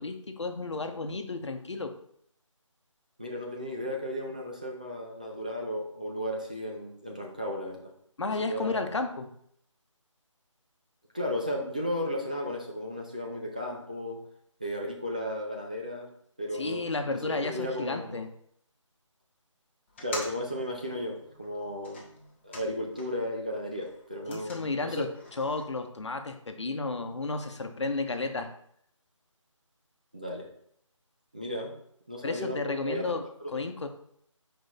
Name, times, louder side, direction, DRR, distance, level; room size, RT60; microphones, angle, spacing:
voice 1, 0.0-1.9 8.2-9.3 16.5-18.3 24.3-25.1 25.4-28.5 32.2-33.2 33.5-33.9, left 3 dB, 60° left, 6 dB, 1.0 m, -32 dB
voice 2, 3.2-7.9 8.5-8.9 11.1-14.2 14.6-16.1 16.4-18.3 20.0-22.0 22.4-25.1 30.1-30.5 31.3-31.7 32.1-33.0 33.4-33.6, left 1 dB, 15° right, -1 dB, 0.4 m, -34 dB
sound 1, 19.9-23.3 23.6-25.6, left 2 dB, 20° left, 0.9 m, -45 dB
6.3 x 4.6 x 4.1 m, 0.68 s
figure-of-eight pair, 165°, 17 cm